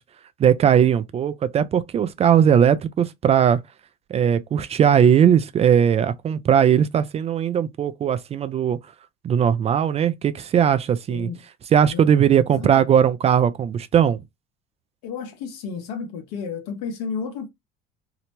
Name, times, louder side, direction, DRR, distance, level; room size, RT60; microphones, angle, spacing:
voice 1, 0.4-3.6 4.1-8.8 9.2-11.3 11.7-14.2, right 8 dB, 30° right, 0.4 m, -19 dB
voice 2, 11.1-11.4 11.9-12.1 12.6-12.9 15.0-17.5, left 5 dB, 85° left, 1.0 m, -32 dB
2.9 x 2.1 x 2.9 m
supercardioid pair, 95°, 20 cm